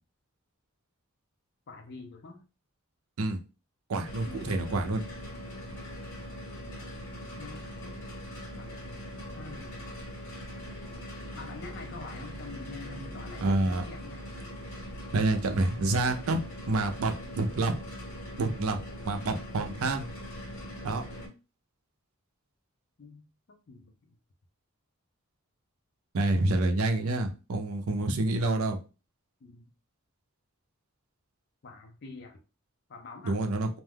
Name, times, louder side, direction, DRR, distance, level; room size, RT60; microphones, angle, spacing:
voice 1, 1.7-2.4 4.2-4.8 7.3-8.0 8.4-9.1 9.3-9.7 11.3-14.2 23.0-24.2 29.4-29.7 31.6-32.4 32.9-33.4, left 3 dB, 50° left, 3 dB, 0.5 m, -46 dB
voice 2, 3.9-5.1 13.4-13.8 15.1-16.4 16.7-17.7 18.4-20.0 20.8-21.0 26.1-28.8 33.2-33.7, right 2 dB, 75° right, 6 dB, 0.5 m, -28 dB
sound 1, 4.0-21.3, equal, 75° left, 1.2 m, -41 dB
2.5 x 2.2 x 3.3 m, 0.31 s
head